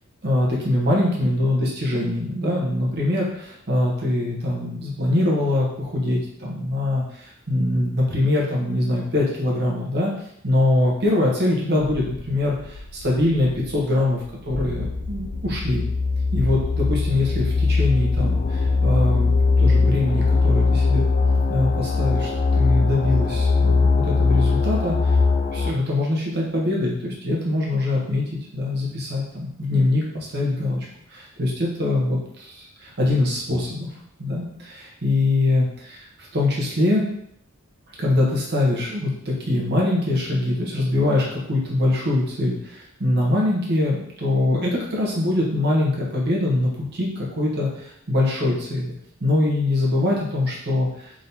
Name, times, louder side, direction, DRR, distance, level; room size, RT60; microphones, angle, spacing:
voice 1, 0.2-10.1 10.4-15.8 16.3-19.3 19.6-21.0 21.5-25.2 25.5-30.8 31.1-33.9 34.2-36.0 36.3-37.1 38.0-48.9 49.2-51.1, left 1 dB, 50° right, -3 dB, 1.1 m, -23 dB
sound 1, 11.9-25.7, left 4 dB, 40° left, 0.3 m, -21 dB
3.7 x 3.6 x 2.8 m, 0.71 s
head